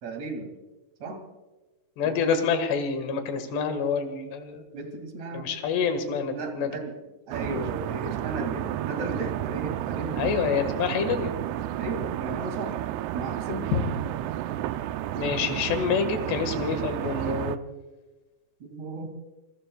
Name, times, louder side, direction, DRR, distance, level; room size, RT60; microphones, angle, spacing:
voice 1, 0.0-0.6 1.0-1.2 2.0-2.3 4.7-5.5 6.3-6.9 7.3-10.3 11.8-12.8 13.1-13.8 18.6-19.1, right 2 dB, 45° right, 4 dB, 3.1 m, -35 dB
voice 2, 2.0-4.6 5.3-6.7 10.2-11.3 13.7-13.8 15.2-17.6, left 6 dB, 75° left, 7 dB, 3.8 m, -27 dB
sound 1, 7.3-17.6, right 13 dB, 80° right, 2.5 m, -31 dB
28.0 x 19.0 x 2.3 m, 1.2 s
omnidirectional pair, 5.0 m